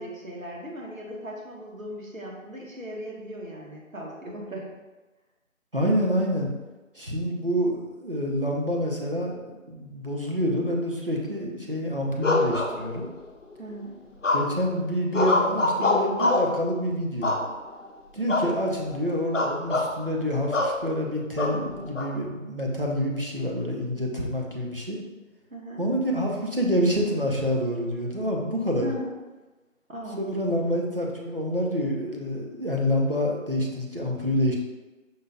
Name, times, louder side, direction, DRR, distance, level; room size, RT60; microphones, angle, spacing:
voice 1, 0.0-4.7 13.6-14.0 25.5-25.9 28.8-29.1 29.9-30.3, equal, 75° right, -2 dB, 1.4 m, -37 dB
voice 2, 5.7-6.5 6.9-13.1 14.3-17.4 18.1-25.0 25.8-28.9 30.2-34.6, equal, 45° right, -1 dB, 0.7 m, -27 dB
sound 1, 12.2-13.2 14.2-14.7 15.1-16.6 17.2-17.8 18.3-18.5 18.8-19.0 19.3-19.9 20.5-20.8 21.4-22.1, left 2 dB, 65° left, 0.7 m, -24 dB
5.5 x 2.3 x 3.7 m, 1.1 s
figure-of-eight pair, 175°, 41 cm